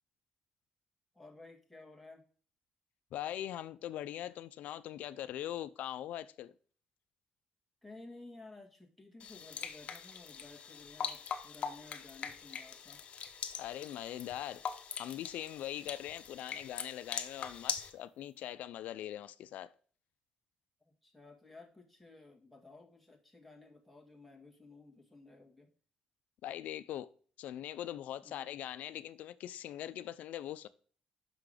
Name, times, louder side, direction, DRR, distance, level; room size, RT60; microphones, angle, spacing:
voice 1, 1.1-2.2 7.8-13.1 15.7-16.0 20.8-25.7 28.2-28.5, left 3 dB, ahead, 1.7 m, -55 dB
voice 2, 3.1-6.5 13.6-14.6 15.0-19.7 26.4-27.1 27.4-30.7, left 12 dB, 80° left, 0.4 m, -41 dB
sound 1, 9.2-17.9, left 7 dB, 50° left, 1.0 m, -42 dB
6.0 x 5.7 x 5.0 m
cardioid pair, 135°, 3 cm